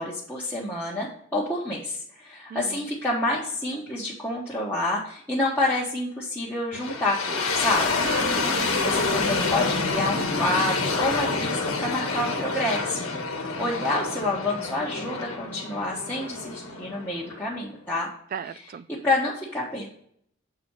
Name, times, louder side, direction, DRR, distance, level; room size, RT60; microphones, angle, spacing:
voice 1, 0.0-8.0 8.8-18.1 18.9-19.9, left 2 dB, 10° left, -7 dB, 1.1 m, -28 dB
voice 2, 2.5-2.8 8.0-9.2 18.3-18.9, right 7 dB, 45° right, 15 dB, 0.3 m, -36 dB
sound 1, 6.7-17.7, left 3 dB, 85° left, 1.3 m, -28 dB
6.9 x 4.1 x 4.5 m, 0.67 s
head